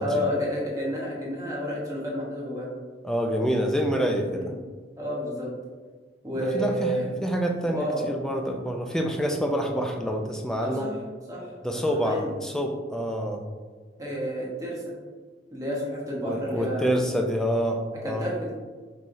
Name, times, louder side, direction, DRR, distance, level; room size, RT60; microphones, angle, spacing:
voice 1, 0.0-2.7 4.3-4.5 5.0-5.5 6.2-7.1 7.6-8.1 10.6-10.9 11.3-11.5 11.9-12.3 14.0-14.8 15.5-16.9 18.0-18.5, equal, 20° right, -5 dB, 1.1 m, -30 dB
voice 2, 3.0-4.5 6.3-6.9 7.2-10.9 11.6-13.4 16.2-18.3, equal, 5° left, 2 dB, 0.3 m, -27 dB
5.5 x 3.1 x 2.6 m, 1.5 s
head